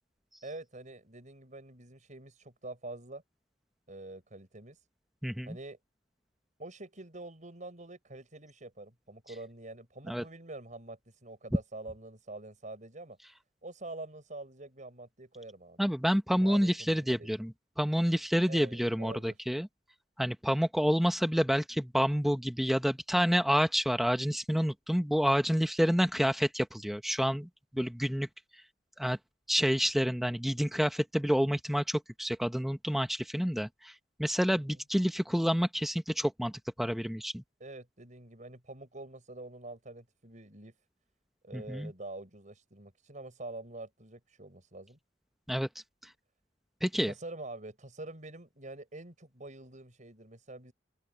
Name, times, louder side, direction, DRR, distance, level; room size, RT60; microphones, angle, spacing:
voice 1, 0.4-3.2 3.9-4.9 5.5-5.8 6.6-13.2 13.6-15.9 16.4-17.3 18.5-19.4 34.5-34.8 37.6-40.7 41.4-45.0 47.0-50.7, right 2 dB, 45° right, 5.8 m, -46 dB
voice 2, 5.2-5.6 10.1-10.2 15.8-19.7 20.2-27.5 27.7-28.3 29.0-29.2 29.5-33.9 34.2-36.5 36.8-37.4 41.5-41.9 45.5-45.7 46.8-47.1, equal, ahead, 0.8 m, -28 dB
open air
head